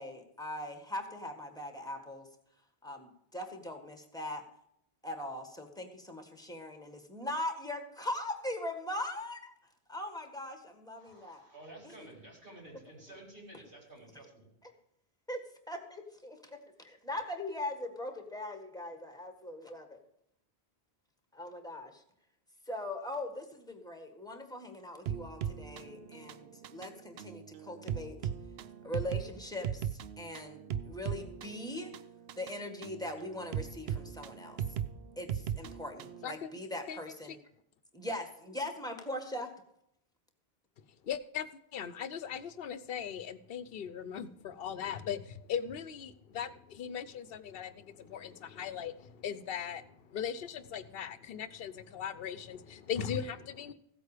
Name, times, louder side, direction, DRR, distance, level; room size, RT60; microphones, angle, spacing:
voice 1, 0.0-2.3 2.8-4.4 5.0-9.5 9.9-11.5 11.8-11.9 13.5-13.6 15.3-20.0 21.3-22.0 22.7-28.2 28.8-31.9 32.3-34.6 35.2-37.3 37.9-39.5, left 1 dB, 5° left, 5 dB, 1.7 m, -40 dB
voice 2, 11.0-14.5, right 1 dB, 60° right, -2 dB, 4.9 m, -52 dB
sound 1, 25.1-36.3, right 9 dB, 75° right, 0.8 m, -39 dB
voice 3, 41.0-53.7, left 8 dB, 70° left, 14 dB, 0.9 m, -39 dB
15.5 x 8.2 x 5.0 m, 0.77 s
omnidirectional pair, 1.0 m